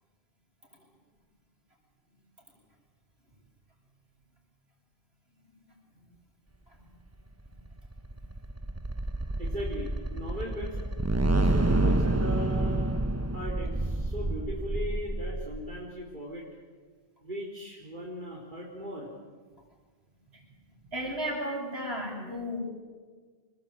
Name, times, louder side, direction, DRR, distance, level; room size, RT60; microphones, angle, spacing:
sound 1, 7.5-15.9, right 1 dB, 15° right, 0.8 m, -28 dB
voice 1, 9.4-10.8 11.3-12.9 13.3-16.5 17.2-19.1, equal, 50° right, -3 dB, 4.3 m, -38 dB
voice 2, 20.9-22.6, equal, 80° right, -1 dB, 8.5 m, -33 dB
26.5 x 21.0 x 9.2 m, 1.5 s
omnidirectional pair, 1.0 m